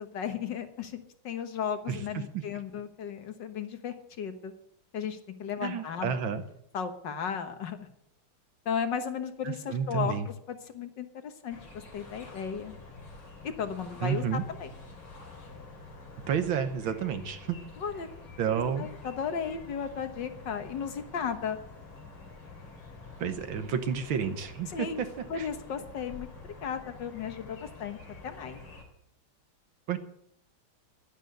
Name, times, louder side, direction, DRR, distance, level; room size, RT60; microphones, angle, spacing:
voice 1, 0.0-4.5 4.9-6.1 6.7-7.9 8.6-11.6 11.9-12.7 13.4-14.7 17.8-18.1 18.5-21.6 24.7-25.0 25.3-26.3 26.6-28.0 28.2-28.6, left 7 dB, 60° left, 8 dB, 1.8 m, -35 dB
voice 2, 1.9-2.2 5.6-6.4 9.4-10.3 14.0-14.4 16.3-17.6 18.4-18.9 23.2-25.1 25.3-25.5 29.9-30.0, right 7 dB, 70° right, 9 dB, 1.7 m, -30 dB
sound 1, 11.5-28.8, left 3 dB, 90° left, 3.9 m, -48 dB
11.5 x 10.5 x 7.9 m, 0.74 s
omnidirectional pair, 2.3 m